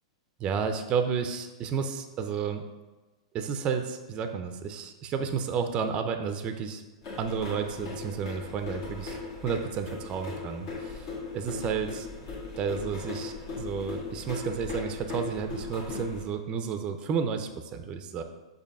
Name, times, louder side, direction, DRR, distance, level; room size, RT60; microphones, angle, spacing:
voice 1, 0.4-2.6 3.3-6.8 7.2-9.2 9.4-11.1 11.3-12.1 12.6-18.2, right 6 dB, 30° right, 7 dB, 0.5 m, -31 dB
sound 1, 7.0-16.2, left 4 dB, 50° left, 1.7 m, -38 dB
6.7 x 2.8 x 5.3 m, 1.2 s
hypercardioid pair, 120°, 3 cm